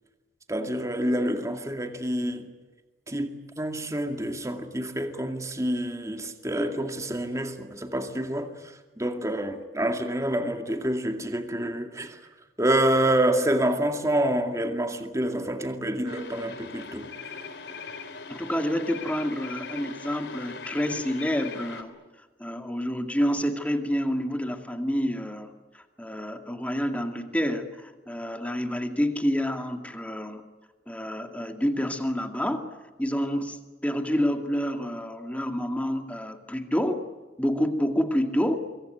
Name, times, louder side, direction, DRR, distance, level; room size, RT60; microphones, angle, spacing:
voice 1, 0.5-2.5 3.1-12.2 12.6-17.1, right 1 dB, 15° right, 2.2 m, -27 dB
sound 1, 16.1-21.8, left 3 dB, 65° left, 3.4 m, -41 dB
sound 2, 17.1-18.1 18.9-19.9 20.6-21.6, left 9 dB, 80° left, 2.6 m, -42 dB
voice 2, 18.3-21.9 22.4-30.4 30.9-32.7 33.0-33.6 33.8-37.0 37.4-38.6, equal, 10° left, 2.3 m, -28 dB
25.0 x 24.0 x 9.4 m
head